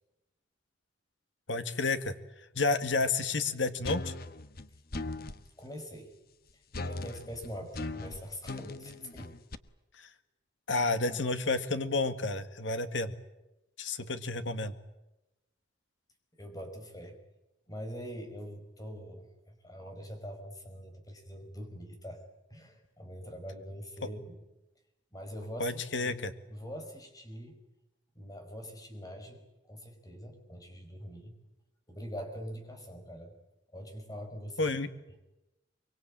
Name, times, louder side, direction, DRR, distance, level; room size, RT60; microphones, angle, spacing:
voice 1, 1.5-2.1 2.6-4.1 10.0-10.1 10.7-13.1 13.8-14.7 25.6-26.3 34.6-34.9, left 3 dB, 75° left, 10 dB, 1.9 m, -30 dB
sound 1, 3.8-5.4 6.7-9.5, left 2 dB, 50° left, 1.2 m, -39 dB
voice 2, 5.6-6.1 6.5-9.3 10.9-11.2 16.4-17.1 17.7-22.2 22.5-24.4 25.1-26.2 26.5-27.6 28.2-29.4 29.7-31.3 31.9-33.3 33.7-34.7, equal, 20° left, 5 dB, 5.4 m, -44 dB
24.5 x 24.0 x 8.7 m, 0.95 s
head